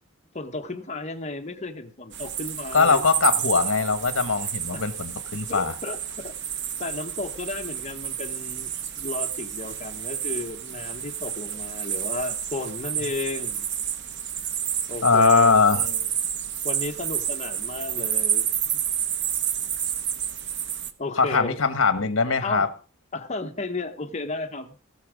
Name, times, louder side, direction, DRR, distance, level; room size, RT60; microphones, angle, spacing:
voice 1, 0.3-3.0 4.7-4.8 5.5-6.3 6.8-8.7 9.0-13.7 14.9-15.7 16.6-18.5 18.7-18.8 21.0-21.6 22.4-22.7 23.1-24.8, left 3 dB, 35° left, 5 dB, 1.2 m, -33 dB
sound 1, 2.1-20.9, right 9 dB, 55° right, 1.0 m, -30 dB
voice 2, 2.7-5.7 15.0-16.1 21.2-22.7, left 4 dB, 65° left, 10 dB, 1.3 m, -21 dB
17.0 x 7.1 x 5.1 m, 0.37 s
head